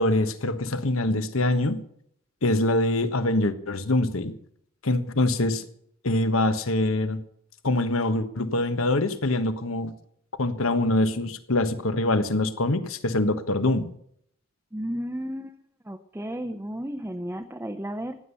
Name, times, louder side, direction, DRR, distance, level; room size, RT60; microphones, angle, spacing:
voice 1, 0.0-1.8 2.4-4.3 4.8-5.6 6.0-7.2 7.6-9.9 10.4-13.9, left 2 dB, 70° left, 11 dB, 1.3 m, -24 dB
voice 2, 14.7-15.6 15.9-18.2, equal, 10° right, 4 dB, 0.8 m, -33 dB
15.5 x 10.0 x 6.9 m, 0.68 s
head